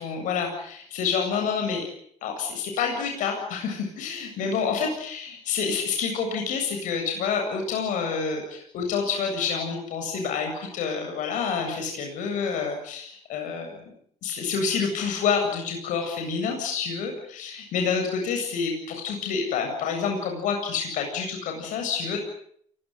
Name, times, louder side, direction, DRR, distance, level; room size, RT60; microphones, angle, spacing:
voice 1, 0.0-1.8 2.2-13.8 14.2-22.2, left 6 dB, 80° left, 3 dB, 7.9 m, -28 dB
29.5 x 18.0 x 9.8 m, 0.67 s
cardioid pair, 115°, 13 cm